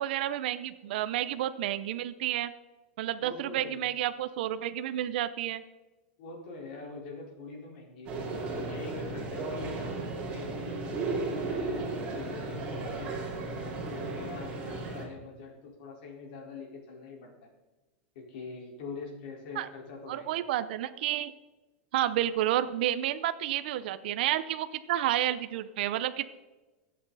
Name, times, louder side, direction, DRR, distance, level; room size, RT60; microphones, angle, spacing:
voice 1, 0.0-2.5 3.0-5.6 19.6-19.7 20.1-21.3 21.9-26.3, right 12 dB, 50° right, 12 dB, 0.7 m, -30 dB
voice 2, 3.2-3.9 6.2-8.1 8.5-11.9 12.1-17.5 18.1-20.4, left 4 dB, 45° left, -1 dB, 4.2 m, -44 dB
sound 1, 8.1-15.1, right 3 dB, 15° right, 2.8 m, -35 dB
24.0 x 8.7 x 4.1 m, 1.2 s
supercardioid pair, 180°, 7 cm